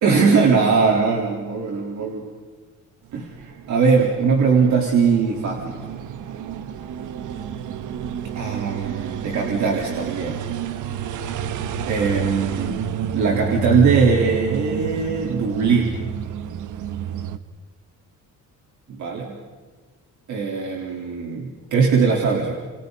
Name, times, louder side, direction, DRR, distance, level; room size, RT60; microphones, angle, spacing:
voice 1, 0.0-2.3 3.1-5.8 8.3-10.4 11.9-12.7 13.1-16.0 18.9-19.4 20.3-22.5, right 5 dB, 70° right, -1 dB, 3.9 m, -20 dB
sound 1, 3.1-17.4, right 7 dB, 85° right, 1.3 m, -30 dB
29.0 x 29.0 x 4.1 m, 1.4 s
cardioid pair, 155°, 30 cm